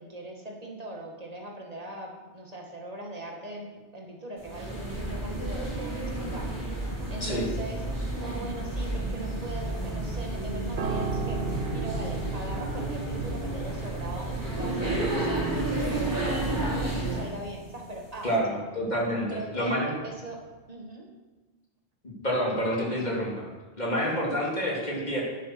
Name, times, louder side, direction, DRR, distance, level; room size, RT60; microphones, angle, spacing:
voice 1, 0.0-11.4 11.7-18.6 19.3-19.7 20.0-20.4 20.7-21.1 24.8-24.9, right 1 dB, 35° right, 0 dB, 2.1 m, -40 dB
sound 1, 4.4-17.3, right 2 dB, 15° right, 3.8 m, -31 dB
Piano, 10.8-20.1 20.4-20.7, right 4 dB, 65° right, 1.0 m, -38 dB
voice 2, 18.2-19.9 22.0-23.5 23.8-25.2, equal, 40° left, -4 dB, 3.3 m, -28 dB
10.5 x 10.5 x 6.2 m, 1.2 s
omnidirectional pair, 1.2 m